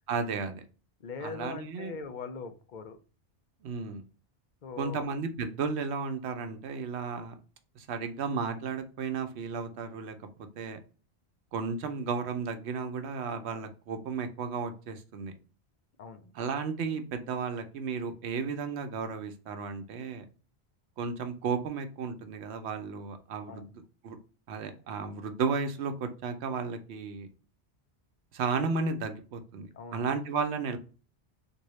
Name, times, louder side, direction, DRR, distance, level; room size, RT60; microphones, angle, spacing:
voice 1, 0.1-0.6 1.2-2.0 3.6-4.0 4.8-7.3 7.8-10.3 10.6-10.8 11.5-15.3 16.3-20.2 21.0-23.7 24.0-24.2 24.5-27.3 28.3-30.8, right 5 dB, 75° right, 7 dB, 0.9 m, -34 dB
voice 2, 1.0-3.0 4.6-5.1 16.0-16.3 23.5-23.7 29.7-30.1, left 5 dB, 55° left, 8 dB, 0.6 m, -41 dB
3.7 x 2.7 x 3.0 m, 0.35 s
omnidirectional pair, 1.1 m